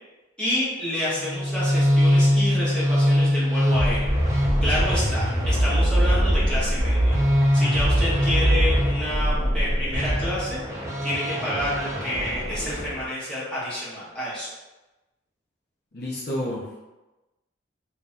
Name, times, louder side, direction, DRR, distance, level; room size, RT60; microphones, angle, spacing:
voice 1, 0.4-7.2 7.5-10.6 11.0-14.5, left 1 dB, 5° left, -10 dB, 1.2 m, -29 dB
sound 1, 1.2-13.0, equal, 15° right, 0.7 m, -22 dB
voice 2, 15.9-16.8, left 1 dB, 55° left, -5 dB, 0.7 m, -30 dB
3.1 x 2.7 x 3.5 m, 1.1 s
head